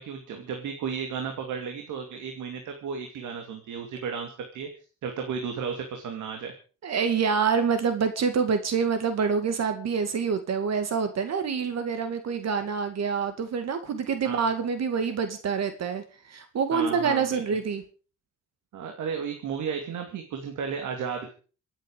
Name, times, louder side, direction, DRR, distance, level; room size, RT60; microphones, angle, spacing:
voice 1, 0.0-4.7 5.0-6.5 14.2-14.5 16.7-17.6 18.7-21.3, right 6 dB, 75° right, 4 dB, 2.7 m, -34 dB
voice 2, 6.8-17.8, right 6 dB, 60° right, 9 dB, 2.3 m, -26 dB
27.0 x 9.0 x 5.1 m, 0.38 s
cardioid pair, 90°, 30 cm